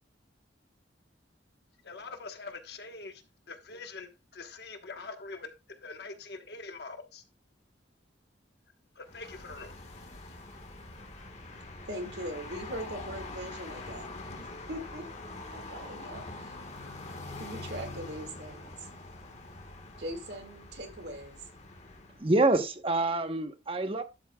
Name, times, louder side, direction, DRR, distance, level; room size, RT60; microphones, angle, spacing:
voice 1, 1.8-3.2 3.5-7.2 8.9-10.3, left 3 dB, 60° left, 1.2 m, -44 dB
sound 1, 9.0-22.3, left 2 dB, 40° left, 1.5 m, -44 dB
voice 2, 11.9-15.1 15.5-16.5 17.4-18.9 20.0-21.4, equal, 65° right, 2.0 m, -41 dB
voice 3, 22.2-24.0, right 2 dB, 30° right, 1.0 m, -26 dB
11.5 x 7.6 x 2.3 m
head